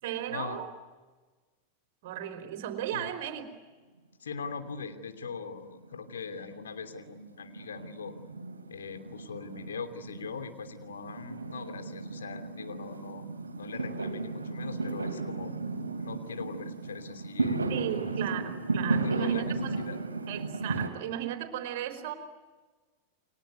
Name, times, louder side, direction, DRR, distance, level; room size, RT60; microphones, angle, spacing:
voice 1, 0.0-0.7 2.0-3.5 17.7-19.8 20.3-22.1, right 11 dB, 50° right, 8 dB, 4.3 m, -35 dB
voice 2, 4.2-8.1 8.7-13.3 13.5-15.5 16.0-18.1 18.5-20.0, left 5 dB, 65° left, 8 dB, 2.9 m, -41 dB
Fireworks, 4.4-5.4 5.6-20.9, right 3 dB, 75° right, 2.8 m, -35 dB
30.0 x 23.5 x 8.2 m, 1.3 s
figure-of-eight pair, 90°, 0 cm